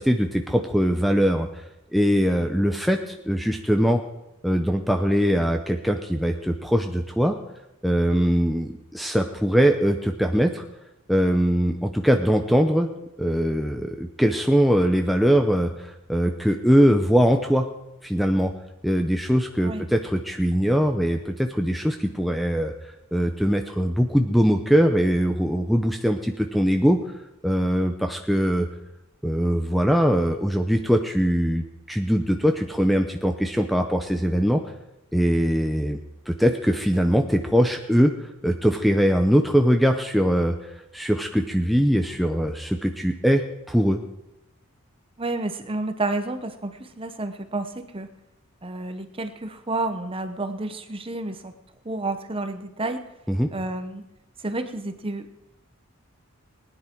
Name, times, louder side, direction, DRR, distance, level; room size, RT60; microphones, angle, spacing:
voice 1, 0.0-1.6 1.9-4.0 4.4-7.4 7.8-10.6 11.1-12.9 13.2-17.7 18.0-18.5 18.8-22.7 23.1-27.0 27.4-28.7 29.2-34.6 35.1-36.0 36.3-44.0 53.3-53.5, equal, ahead, 4 dB, 0.6 m, -21 dB
voice 2, 45.2-48.1 48.6-51.5 51.8-53.0 53.5-54.0 54.4-55.3, right 2 dB, 25° right, 9 dB, 1.0 m, -30 dB
19.5 x 10.0 x 4.6 m, 0.90 s
head